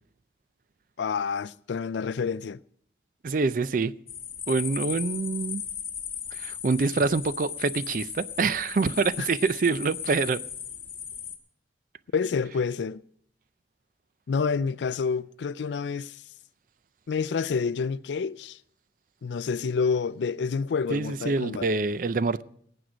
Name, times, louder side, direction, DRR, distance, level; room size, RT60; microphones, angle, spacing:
voice 1, 1.0-2.6 9.2-9.3 12.1-13.0 14.3-16.2 17.1-18.6 19.2-21.7, left 5 dB, 85° left, 0.4 m, -28 dB
voice 2, 3.2-3.9 4.5-5.6 6.3-10.4 20.9-22.4, right 4 dB, 50° right, 0.4 m, -26 dB
sound 1, 4.1-11.4, left 8 dB, 30° left, 1.1 m, -37 dB
18.5 x 7.9 x 5.0 m
head